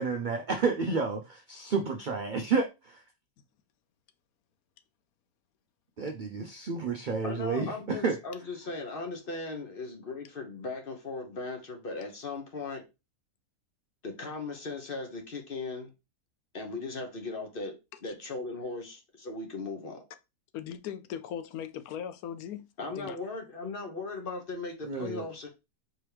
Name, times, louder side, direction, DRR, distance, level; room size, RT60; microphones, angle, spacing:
voice 1, 0.0-3.0 6.0-8.2 24.8-25.3, right 4 dB, 70° right, 0.4 m, -30 dB
voice 2, 7.2-12.8 14.0-15.9 16.5-17.8 18.0-20.0 22.8-25.5, left 3 dB, 40° left, 1.1 m, -38 dB
voice 3, 20.5-22.7 23.0-23.2, left 9 dB, 85° left, 1.0 m, -38 dB
4.6 x 3.1 x 3.3 m
omnidirectional pair, 1.5 m